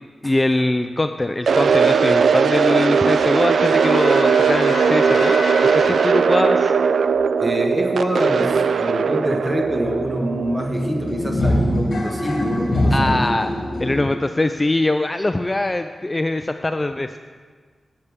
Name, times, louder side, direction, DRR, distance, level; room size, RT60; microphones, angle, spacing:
voice 1, 0.2-6.7 12.9-13.5 13.8-17.2, left 2 dB, 20° left, 8 dB, 0.4 m, -22 dB
sound 1, 1.5-11.5, right 6 dB, 80° right, 0.3 m, -19 dB
Wind instrument woodwind instrument, 3.1-7.1, left 4 dB, 85° left, 0.4 m, -32 dB
sound 2, 7.1-7.2 7.6-7.7 8.0-14.0, left 1 dB, 55° left, 1.8 m, -25 dB
voice 2, 7.4-13.2, right 1 dB, 20° right, 1 dB, 1.5 m, -25 dB
16.0 x 6.8 x 3.6 m, 1.5 s
wide cardioid pair, 85°, 0 cm